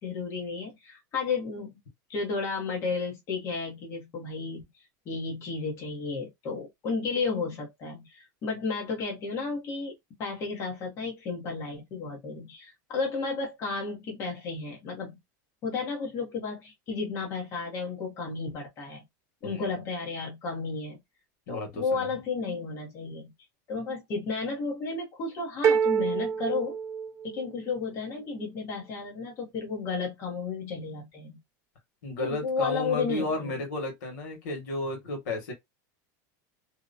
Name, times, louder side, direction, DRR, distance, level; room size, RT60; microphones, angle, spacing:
voice 1, 0.0-1.8 2.1-4.6 5.1-9.9 10.2-15.1 15.6-19.0 19.4-21.0 21.5-23.3 23.7-26.8 27.2-31.4 32.2-33.6, left 4 dB, 30° left, 0.9 m, -33 dB
voice 2, 19.4-19.8 21.5-22.1 32.0-35.5, left 2 dB, 75° left, 1.3 m, -33 dB
sound 1, 25.6-27.6, right 7 dB, 25° right, 0.4 m, -26 dB
2.7 x 2.1 x 2.5 m
supercardioid pair, 170°, 10 cm